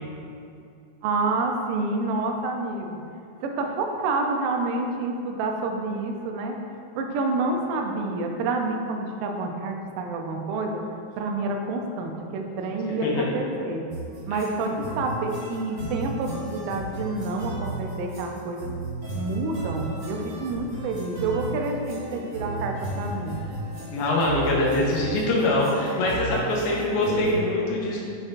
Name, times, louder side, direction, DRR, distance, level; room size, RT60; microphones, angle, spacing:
voice 1, 1.0-3.0 3.4-6.6 7.0-10.8 11.2-13.8 14.3-18.7 19.1-23.4, right 3 dB, 80° right, 2 dB, 1.9 m, -28 dB
sound 1, 13.9-27.4, right 1 dB, 50° right, 2.3 m, -35 dB
voice 2, 14.3-14.7 23.9-28.0, left 1 dB, 85° left, -3 dB, 3.0 m, -24 dB
8.8 x 6.1 x 2.5 m, 2.5 s
omnidirectional pair, 4.5 m